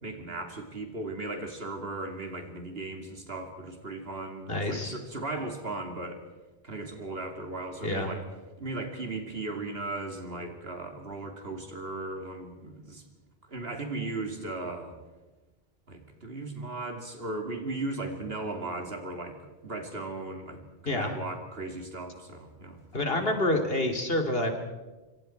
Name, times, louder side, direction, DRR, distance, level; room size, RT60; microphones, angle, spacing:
voice 1, 0.0-6.2 6.6-8.2 8.6-13.0 13.5-15.0 15.9-22.8 23.1-23.4, right 2 dB, 65° right, 4 dB, 3.0 m, -37 dB
voice 2, 4.5-5.0 7.8-8.1 20.9-21.1 22.9-24.6, left 1 dB, 65° left, 4 dB, 2.9 m, -28 dB
25.5 x 25.5 x 4.5 m, 1.2 s
omnidirectional pair, 1.1 m